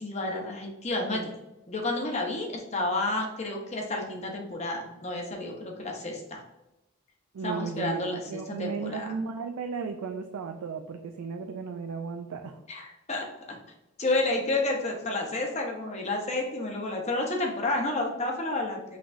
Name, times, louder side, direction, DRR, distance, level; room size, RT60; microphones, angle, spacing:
voice 1, 0.0-1.3 1.7-6.4 7.4-8.2 8.6-9.1 12.7-13.6 14.0-19.0, left 2 dB, 30° left, 1 dB, 0.7 m, -30 dB
voice 2, 1.0-1.3 7.3-12.6, right 5 dB, 90° right, 5 dB, 0.4 m, -35 dB
5.7 x 3.0 x 2.5 m, 0.92 s
head